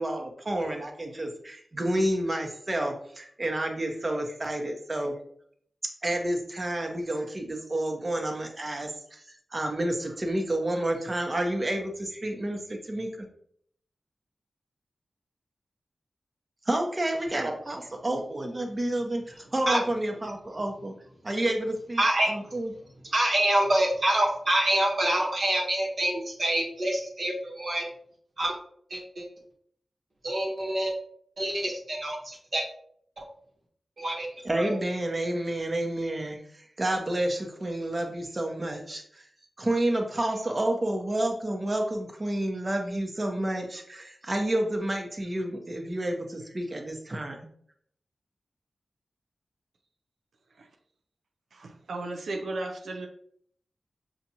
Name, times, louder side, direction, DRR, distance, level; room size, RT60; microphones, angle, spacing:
voice 1, 0.0-5.1 6.0-9.2 9.5-13.3 16.7-20.9 21.2-22.7 34.4-39.2 39.6-47.4, right 1 dB, 40° right, 3 dB, 0.9 m, -30 dB
voice 2, 22.0-22.3 23.1-27.8 28.4-28.5 28.9-29.2 30.2-30.9 31.4-32.6 33.2-33.3 34.0-34.3 34.6-34.8, right 1 dB, 65° right, -1 dB, 1.1 m, -26 dB
voice 3, 51.5-53.1, right 2 dB, 90° right, 4 dB, 0.4 m, -35 dB
5.8 x 2.5 x 2.8 m, 0.64 s
cardioid pair, 45°, 0 cm